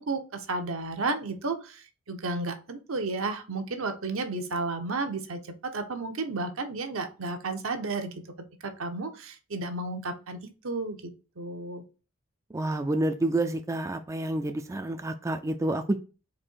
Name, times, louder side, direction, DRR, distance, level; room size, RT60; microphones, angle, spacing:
voice 1, 0.0-8.1 8.6-11.8, right 3 dB, 75° right, 6 dB, 0.8 m, -33 dB
voice 2, 12.5-16.0, right 1 dB, 15° right, 7 dB, 0.3 m, -28 dB
4.2 x 2.7 x 4.4 m, 0.32 s
head